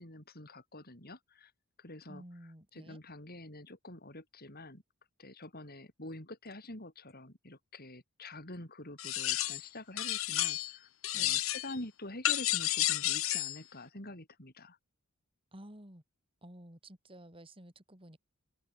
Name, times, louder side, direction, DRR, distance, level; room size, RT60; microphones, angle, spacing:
voice 1, 0.0-1.5 1.8-2.2 2.7-4.8 5.2-14.8, left 1 dB, 45° left, 6.8 m, -47 dB
voice 2, 2.1-3.0 11.1-11.4 15.5-16.0 16.4-18.2, right 1 dB, 25° right, 4.2 m, -52 dB
sound 1, 9.0-9.7 10.0-10.8 11.0-11.8 12.2-13.6, left 14 dB, 65° left, 1.7 m, -31 dB
open air
head